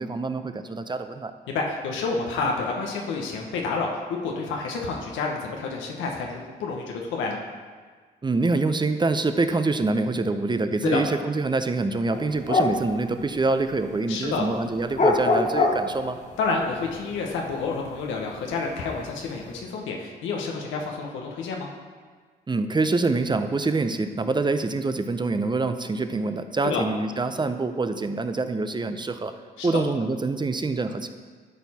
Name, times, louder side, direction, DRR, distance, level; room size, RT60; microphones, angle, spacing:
voice 1, 0.0-1.3 8.2-16.2 22.5-29.3 29.6-31.1, right 3 dB, 25° right, 9 dB, 0.6 m, -25 dB
voice 2, 1.5-7.4 10.8-11.0 14.1-14.5 16.4-21.7 26.6-26.8 29.6-29.8, left 4 dB, 90° left, 0 dB, 1.0 m, -29 dB
sound 1, 12.1-13.9 14.3-16.3 16.7-18.4 18.7-19.5, left 3 dB, 40° left, 1.1 m, -24 dB
12.0 x 4.5 x 4.2 m, 1.5 s
supercardioid pair, 65°, 19 cm